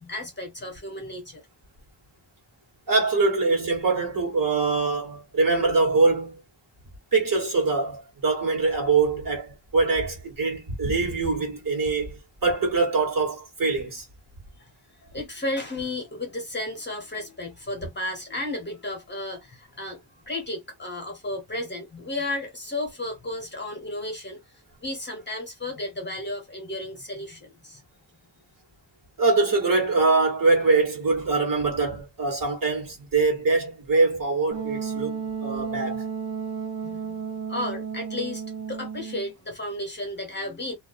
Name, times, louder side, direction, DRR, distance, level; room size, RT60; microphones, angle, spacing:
voice 1, 0.0-1.4 14.6-14.7 15.0-20.0 20.3-27.8 36.8-37.2 37.5-38.4 38.7-40.7, left 1 dB, 25° left, 0.8 m, -33 dB
voice 2, 2.9-6.4 7.1-14.1 29.2-36.1, right 3 dB, 50° right, 1.2 m, -23 dB
Wind instrument woodwind instrument, 34.5-39.3, right 6 dB, 65° right, 0.8 m, -33 dB
2.3 x 2.1 x 2.6 m
wide cardioid pair, 170°, 43 cm